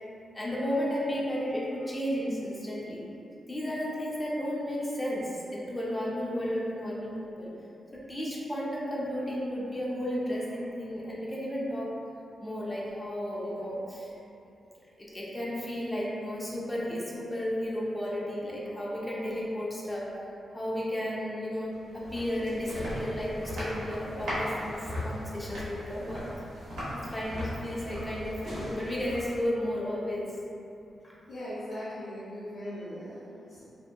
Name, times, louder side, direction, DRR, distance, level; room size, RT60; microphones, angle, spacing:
voice 1, 0.3-3.0 3.5-7.5 7.9-12.0 12.4-14.2 15.0-20.1 20.5-26.2 26.9-30.3 31.0-31.1, equal, 15° left, -6 dB, 0.5 m, -33 dB
sound 1, 21.7-29.5, equal, 85° right, 0.9 m, -38 dB
voice 2, 31.3-33.6, equal, 70° left, -12 dB, 0.6 m, -39 dB
2.7 x 2.5 x 2.2 m, 2.7 s
wide cardioid pair, 110°, 0 cm